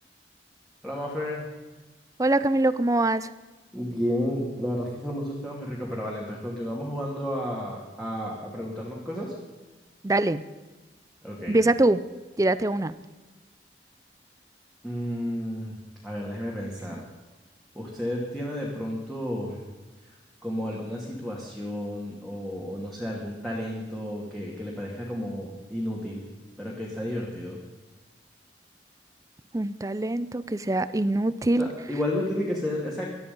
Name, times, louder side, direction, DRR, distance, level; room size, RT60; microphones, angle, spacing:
voice 1, 0.8-1.4 3.7-9.3 11.2-11.6 14.8-15.8 16.0-17.0 17.7-19.6 20.4-26.2 26.6-27.6 31.6-33.0, equal, ahead, -4 dB, 2.5 m, -32 dB
voice 2, 2.2-3.3 10.0-10.4 11.5-12.0 12.4-13.0 29.5-31.7, right 2 dB, 20° right, 15 dB, 0.5 m, -23 dB
18.5 x 12.5 x 5.5 m, 1.2 s
head